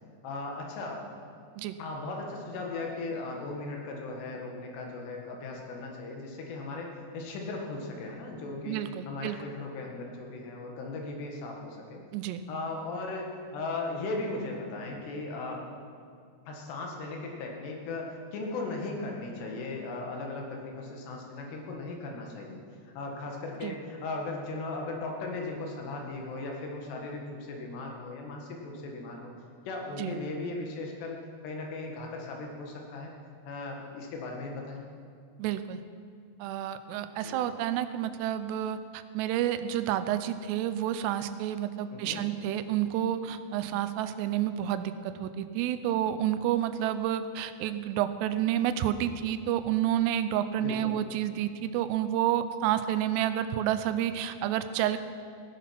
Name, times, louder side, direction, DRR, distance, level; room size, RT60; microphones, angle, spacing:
voice 1, 0.2-1.1 1.8-8.8 9.1-12.0 12.5-15.7 16.5-22.6 23.0-29.3 29.7-31.2 31.4-33.1 33.5-34.8 37.2-37.4 41.9-42.2 50.6-50.9, left 3 dB, 75° left, 1 dB, 3.8 m, -37 dB
voice 2, 8.7-9.4 12.1-12.4 23.6-23.8 30.0-30.1 35.4-35.8 36.4-55.0, right 11 dB, 80° right, 11 dB, 2.7 m, -30 dB
16.5 x 10.0 x 5.9 m, 2.2 s
omnidirectional pair, 5.0 m